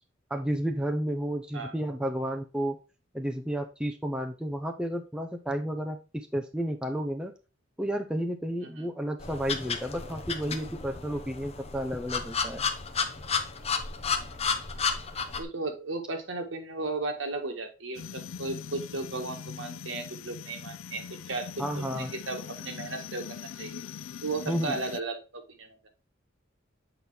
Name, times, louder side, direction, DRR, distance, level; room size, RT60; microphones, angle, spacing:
voice 1, 0.3-2.8 3.1-7.3 7.8-12.6 21.6-22.1 24.5-24.8, equal, 5° right, 4 dB, 0.6 m, -32 dB
sound 1, 9.2-15.4, left 5 dB, 30° left, 0.7 m, -32 dB
voice 2, 15.4-23.8 24.2-25.8, right 3 dB, 70° right, 4 dB, 1.6 m, -35 dB
sound 2, 17.9-25.0, left 7 dB, 85° left, 0.4 m, -42 dB
7.8 x 4.4 x 3.4 m, 0.31 s
head